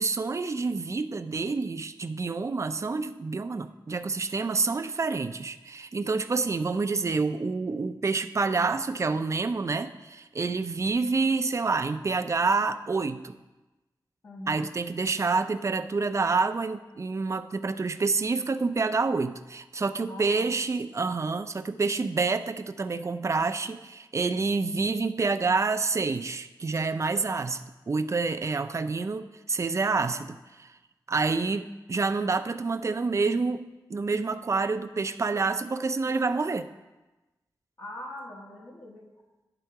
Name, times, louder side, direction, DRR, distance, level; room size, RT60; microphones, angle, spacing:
voice 1, 0.0-13.3 14.5-30.7 31.1-36.7, right 4 dB, 40° right, 9 dB, 0.4 m, -28 dB
voice 2, 14.2-14.7 20.0-20.5 37.8-39.1, left 1 dB, 50° left, -2 dB, 1.1 m, -42 dB
11.0 x 3.8 x 4.6 m, 1.1 s
wide cardioid pair, 80°, 8 cm